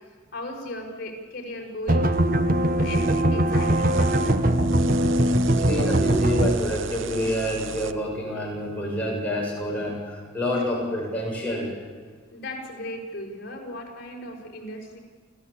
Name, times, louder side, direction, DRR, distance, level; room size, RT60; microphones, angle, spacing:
voice 1, 0.3-2.1 2.8-4.4 12.3-15.0, left 1 dB, 50° left, 0 dB, 5.5 m, -36 dB
sound 1, 1.9-6.5, right 1 dB, 45° right, 1.2 m, -21 dB
sound 2, 2.1-7.9, right 5 dB, 80° right, 0.8 m, -36 dB
voice 2, 5.6-11.7, equal, 5° left, -4 dB, 7.3 m, -28 dB
29.0 x 14.5 x 8.5 m, 1.5 s
head